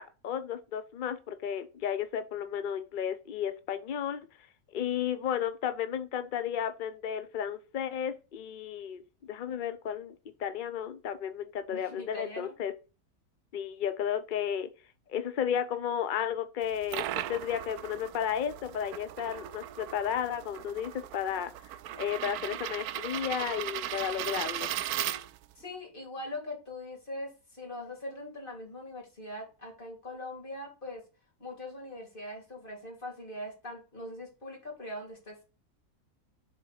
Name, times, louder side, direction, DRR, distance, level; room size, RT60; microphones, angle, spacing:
voice 1, 0.0-4.2 4.7-10.1 10.4-12.7 13.5-14.7 15.1-21.5 21.9-24.7, left 9 dB, 65° left, 0.5 m, -33 dB
voice 2, 11.7-12.5 25.6-31.0 31.4-35.4, left 1 dB, 35° left, 3.1 m, -41 dB
sound 1, 16.6-25.6, right 12 dB, 80° right, 1.0 m, -37 dB
7.2 x 3.9 x 4.2 m
omnidirectional pair, 1.6 m